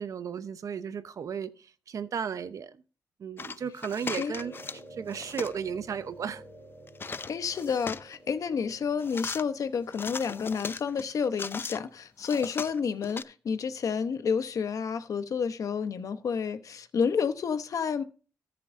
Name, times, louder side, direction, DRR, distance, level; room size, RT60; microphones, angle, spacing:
voice 1, 0.0-2.8 3.2-4.5 4.9-6.4, right 7 dB, 65° right, 0.8 m, -34 dB
sound 1, 3.4-4.8 5.1-5.6 6.9-8.2 9.0-9.4 9.9-11.8 12.2-13.2, left 5 dB, 40° left, 0.4 m, -38 dB
sound 2, 4.3-10.4, right 1 dB, 15° left, 6.3 m, -50 dB
voice 2, 7.3-18.0, left 6 dB, 65° left, 0.9 m, -30 dB
18.0 x 6.9 x 2.6 m
wide cardioid pair, 115°, 6 cm